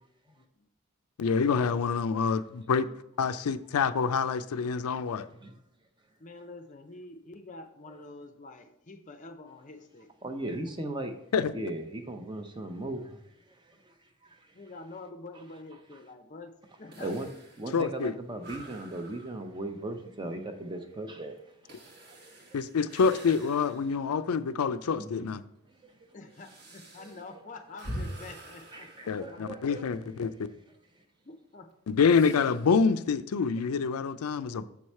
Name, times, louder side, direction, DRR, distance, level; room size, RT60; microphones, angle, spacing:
voice 1, 0.3-0.7 2.8-3.0 6.2-10.1 14.5-17.2 26.1-29.5 30.5-30.6 31.2-31.7, left 3 dB, 35° left, 0.5 m, -47 dB
voice 2, 1.2-2.9 3.2-5.3 11.3-11.5 17.7-18.2 22.5-25.4 29.1-30.3 31.9-34.6, left 5 dB, 85° left, 0.4 m, -26 dB
voice 3, 10.2-11.1 11.5-13.2 13.9-14.0 14.2-14.4 17.0-17.3 17.6-21.4 21.6-21.9 22.5-22.6 25.0-25.3 27.0-27.2 28.7-29.9, right 1 dB, 20° right, 0.6 m, -37 dB
sound 1, 16.9-24.1 24.6-24.7 25.4-30.0 32.0-32.8, equal, 45° right, 1.1 m, -46 dB
7.2 x 4.7 x 4.3 m
head